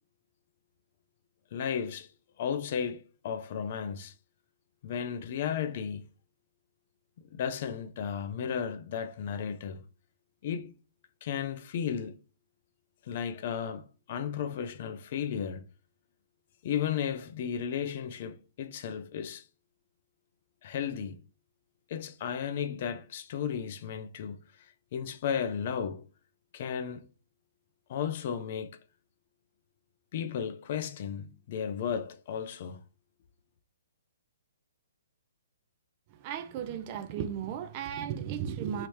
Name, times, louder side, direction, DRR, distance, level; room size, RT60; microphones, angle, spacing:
voice 1, 1.5-2.1 2.4-4.1 4.8-6.0 7.3-9.8 10.4-10.7 11.2-12.2 13.0-15.6 16.6-19.4 20.6-21.2 21.9-24.4 24.9-26.0 26.5-27.1 27.9-28.8 30.1-32.8, left 8 dB, 45° left, 0.4 m, -34 dB
voice 2, 36.1-38.9, right 8 dB, 30° right, 0.4 m, -35 dB
3.1 x 2.8 x 3.1 m
hypercardioid pair, 155°, 0 cm